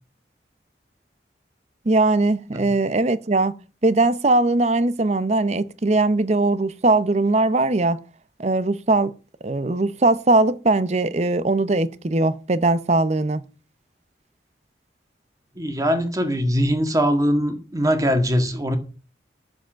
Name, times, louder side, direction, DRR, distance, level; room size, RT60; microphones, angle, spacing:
voice 1, 1.8-3.5 3.8-8.0 8.4-9.1 9.4-13.5, right 2 dB, 40° right, 0.7 m, -20 dB
voice 2, 15.6-18.8, equal, 20° right, 1.7 m, -21 dB
10.5 x 7.1 x 7.4 m
head